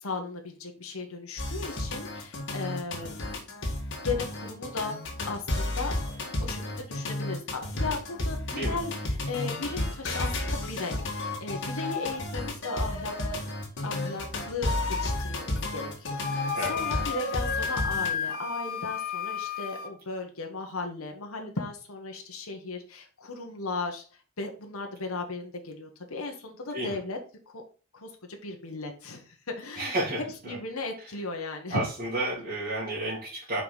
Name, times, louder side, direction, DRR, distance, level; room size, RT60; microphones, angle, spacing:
voice 1, 0.0-3.4 4.0-5.0 5.3-13.5 13.8-14.7 15.0-27.2 27.5-27.6 27.9-31.8, left 3 dB, 80° left, 3 dB, 1.3 m, -36 dB
sound 1, 1.4-18.1, left 2 dB, 60° left, 1.9 m, -32 dB
Wind instrument woodwind instrument, 16.2-19.9, left 7 dB, 45° left, 0.7 m, -33 dB
voice 2, 29.8-30.6 31.7-33.6, right 1 dB, 40° right, -7 dB, 2.1 m, -31 dB
5.3 x 4.8 x 4.0 m, 0.37 s
head